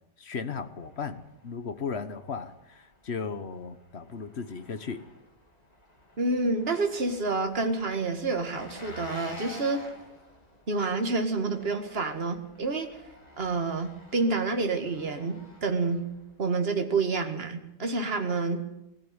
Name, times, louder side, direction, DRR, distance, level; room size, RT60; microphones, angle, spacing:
voice 1, 0.2-5.0, left 5 dB, 40° left, 10 dB, 1.2 m, -36 dB
Engine, 0.6-16.4, left 1 dB, 20° left, 2.8 m, -50 dB
voice 2, 6.2-9.9 10.7-12.9 13.4-16.0 16.4-18.6, right 3 dB, 30° right, 6 dB, 2.1 m, -28 dB
19.0 x 14.5 x 9.7 m, 0.88 s
omnidirectional pair, 2.1 m